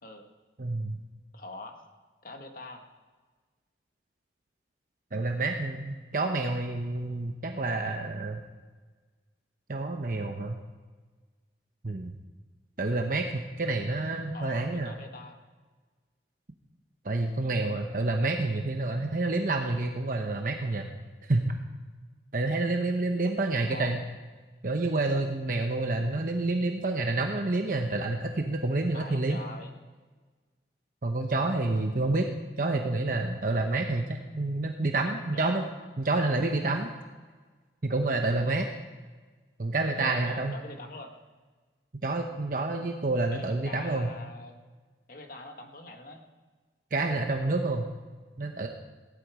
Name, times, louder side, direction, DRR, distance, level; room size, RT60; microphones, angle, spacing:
voice 1, 0.6-1.0 5.1-8.4 9.7-10.6 11.8-12.1 12.8-14.9 17.0-20.9 21.2-21.5 22.3-24.0 24.6-29.4 31.0-32.3 32.6-35.6 36.0-36.9 37.8-38.7 39.6-40.5 42.0-44.1 46.9-47.9 48.4-48.7, right 2 dB, 50° right, 4 dB, 0.9 m, -28 dB
voice 2, 1.3-1.9 2.2-2.9 14.3-15.4 23.5-24.1 28.9-29.7 35.3-35.7 40.0-41.1 43.3-44.7 45.1-46.2, left 2 dB, 50° left, 4 dB, 1.7 m, -44 dB
17.0 x 11.0 x 5.0 m, 1.4 s
head